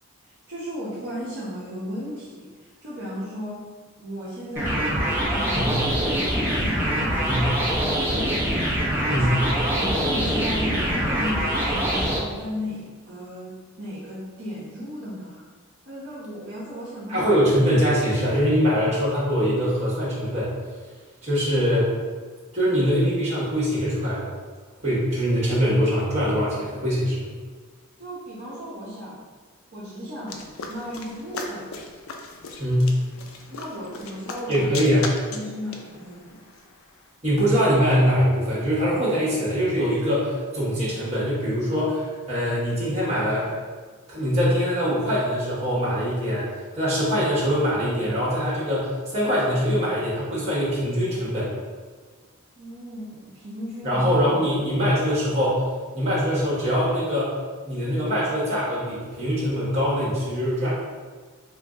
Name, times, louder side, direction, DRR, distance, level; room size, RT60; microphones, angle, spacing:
voice 1, 0.2-3.7 4.0-9.3 9.7-15.4 15.9-17.3 28.0-29.3 29.7-31.8 33.5-34.7 35.3-36.4 52.6-54.0, equal, 50° right, -9 dB, 0.7 m, -35 dB
sound 1, 4.6-12.2, equal, 10° right, 0.6 m, -24 dB
voice 2, 9.1-9.4 17.1-20.5 21.2-21.9 22.5-24.3 24.8-27.3 32.6-32.9 34.5-35.1 37.2-43.6 44.1-46.5 46.7-51.5 53.8-55.6 55.9-57.4 57.6-60.7, equal, 30° right, -7 dB, 1.1 m, -23 dB
sound 2, 30.3-37.1, left 3 dB, 70° left, 0.4 m, -38 dB
3.0 x 2.5 x 3.5 m, 1.4 s
head